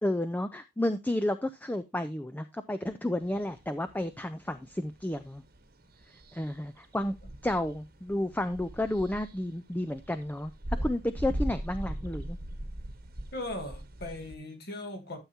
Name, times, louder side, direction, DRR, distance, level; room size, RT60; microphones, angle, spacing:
voice 1, 0.0-5.4 6.3-7.2 7.4-10.5 10.8-12.4, left 1 dB, 10° left, 0.4 m, -31 dB
sound 1, 3.2-14.4, right 1 dB, 45° right, 1.2 m, -40 dB
voice 2, 13.3-15.2, left 1 dB, 50° left, 2.1 m, -38 dB
12.5 x 7.2 x 2.8 m
head